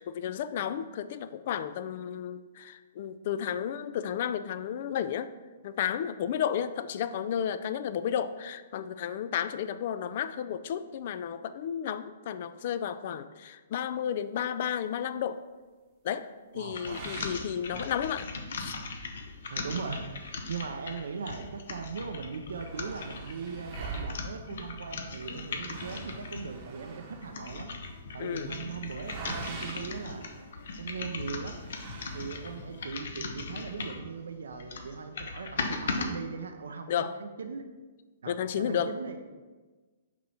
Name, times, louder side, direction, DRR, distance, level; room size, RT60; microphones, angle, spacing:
voice 1, 0.0-5.3 5.6-15.4 16.0-18.3 18.6-18.8 28.2-28.5 36.9-37.2 38.3-39.0, left 9 dB, 50° left, 13 dB, 0.3 m, -32 dB
voice 2, 16.5-17.0 17.7-17.9 19.5-27.7 28.1-30.3 30.8-31.6 32.1-37.6 38.2-39.2, right 5 dB, 85° right, 6 dB, 0.5 m, -39 dB
sound 1, 16.7-26.6 27.1-34.1 34.5-36.1, left 4 dB, 70° left, 0.7 m, -39 dB
sound 2, 16.8-18.3 18.7-18.8 19.3-19.4 20.2-21.5 21.8-21.9 22.2-30.9 31.6-32.7, right 4 dB, 30° right, 0.9 m, -44 dB
sound 3, 25.1-33.1, equal, 90° left, 1.6 m, -54 dB
6.1 x 3.0 x 5.5 m, 1.3 s
hypercardioid pair, 145°, 0 cm